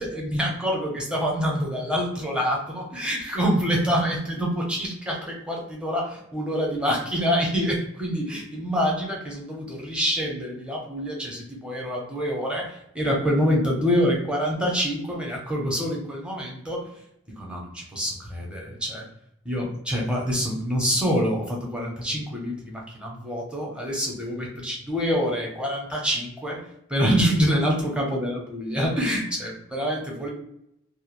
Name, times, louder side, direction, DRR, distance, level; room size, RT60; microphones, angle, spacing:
voice 1, 0.1-16.9 17.4-19.0 19.5-26.6 26.9-30.3, equal, 5° right, -2 dB, 0.6 m, -26 dB
2.3 x 2.0 x 2.9 m, 0.77 s
head